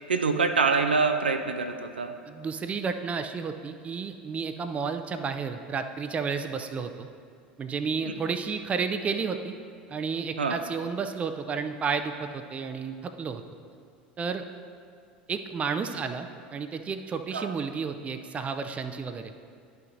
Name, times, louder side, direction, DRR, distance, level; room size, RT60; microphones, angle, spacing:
voice 1, 0.1-2.1 8.0-8.1 10.4-10.6 17.3-17.5, right 4 dB, 80° right, 6 dB, 0.4 m, -25 dB
voice 2, 2.3-7.1 7.6-9.5 9.9-13.4 14.2-14.4 15.3-19.3, right 5 dB, 25° right, 8 dB, 0.5 m, -31 dB
11.5 x 5.7 x 2.6 m, 2.2 s
figure-of-eight pair, 75°, 5 cm